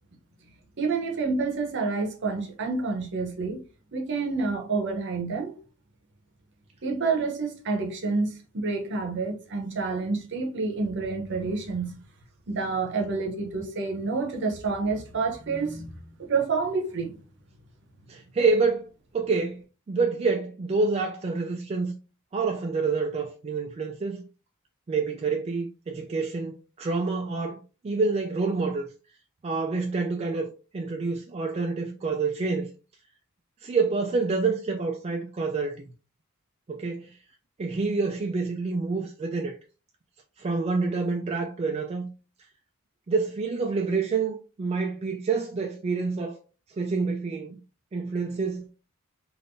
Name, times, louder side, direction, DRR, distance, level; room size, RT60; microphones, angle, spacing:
voice 1, 0.8-3.6 3.9-5.6 6.8-12.0 12.5-15.9 16.2-17.2, right 4 dB, 55° right, 0.7 m, -28 dB
voice 2, 18.1-18.9 19.1-19.6 19.9-21.9 22.3-24.2 24.9-28.8 29.4-32.7 33.6-35.7 36.7-37.1 37.6-39.5 40.4-42.1 43.1-46.4 46.8-47.6 47.9-48.7, right 4 dB, 30° right, 0.3 m, -27 dB
3.6 x 2.5 x 2.5 m
head